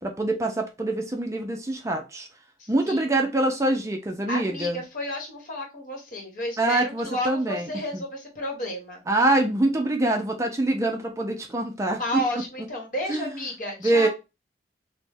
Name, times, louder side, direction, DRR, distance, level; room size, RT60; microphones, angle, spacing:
voice 1, 0.0-2.3 2.7-4.8 6.6-8.0 9.1-12.2 13.1-13.4 13.8-14.1, right 2 dB, 15° right, 3 dB, 0.4 m, -25 dB
voice 2, 2.6-3.0 4.3-9.0 12.0-14.1, left 1 dB, 50° left, -1 dB, 1.2 m, -32 dB
3.1 x 2.1 x 3.3 m, 0.26 s
head